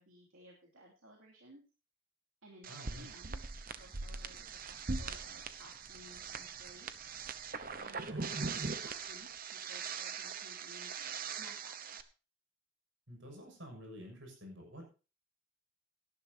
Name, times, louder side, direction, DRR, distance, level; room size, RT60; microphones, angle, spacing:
voice 1, 0.0-1.6 2.4-6.9 7.7-12.0, right 1 dB, 80° right, -1 dB, 2.7 m, -58 dB
sound 1, 2.6-12.0, right 5 dB, 45° right, 0.9 m, -41 dB
voice 2, 2.7-3.1 8.1-8.3 13.1-14.8, equal, 65° right, 2 dB, 6.9 m, -49 dB
17.5 x 11.0 x 2.8 m, 0.33 s
head